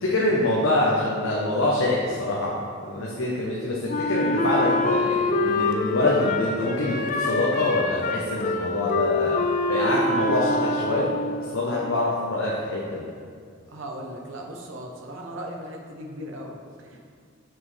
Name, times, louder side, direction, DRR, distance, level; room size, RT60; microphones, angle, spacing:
voice 1, 0.0-2.6 2.8-11.1 11.5-13.1, left 2 dB, 80° left, -4 dB, 0.9 m, -25 dB
Wind instrument woodwind instrument, 3.9-11.4, left 2 dB, 40° left, 0.5 m, -25 dB
voice 2, 13.7-17.0, equal, 65° right, 1 dB, 0.9 m, -38 dB
7.2 x 6.0 x 3.3 m, 2.1 s
head